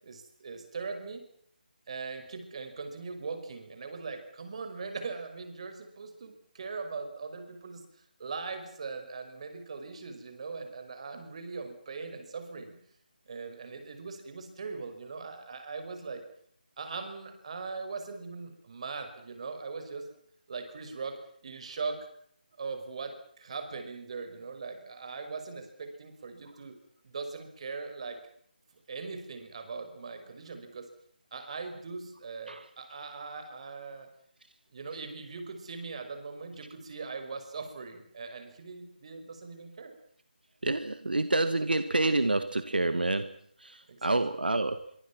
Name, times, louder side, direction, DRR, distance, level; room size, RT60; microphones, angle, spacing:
voice 1, 0.0-1.2 1.9-7.8 8.2-12.8 13.3-16.2 16.8-20.1 20.5-22.1 22.6-26.8 27.0-28.2 28.9-30.9 31.3-34.1 34.7-39.9 43.9-44.2, right 4 dB, 40° right, 7 dB, 5.6 m, -40 dB
voice 2, 40.6-44.9, right 2 dB, 80° right, 11 dB, 1.7 m, -28 dB
25.0 x 24.5 x 6.1 m, 0.64 s
figure-of-eight pair, 160°, 5 cm